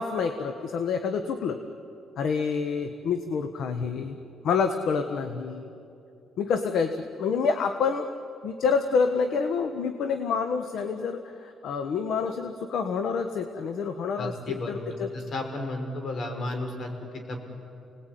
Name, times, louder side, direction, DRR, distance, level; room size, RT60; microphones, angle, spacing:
voice 1, 0.0-1.6 2.2-4.2 4.4-5.7 6.4-8.1 8.4-15.1, left 5 dB, 75° left, 7 dB, 1.4 m, -28 dB
voice 2, 14.2-17.4, left 2 dB, 55° left, 4 dB, 4.9 m, -33 dB
30.0 x 19.5 x 9.3 m, 2.6 s
cardioid pair, 90°, 0 cm